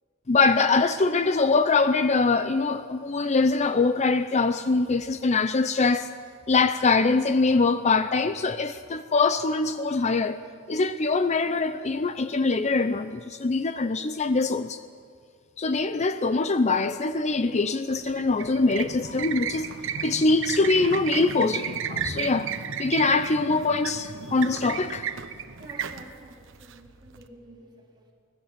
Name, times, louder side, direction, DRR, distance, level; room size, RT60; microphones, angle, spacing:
voice 1, 0.3-6.1 6.5-10.4 10.7-14.8 15.6-19.7 20.0-22.5 22.8-25.1, left 3 dB, 35° left, 0.6 m, -23 dB
sound 1, 17.9-27.2, right 7 dB, 65° right, 1.0 m, -34 dB
voice 2, 25.6-28.1, right 1 dB, 20° right, 4.1 m, -49 dB
24.5 x 17.5 x 7.5 m
head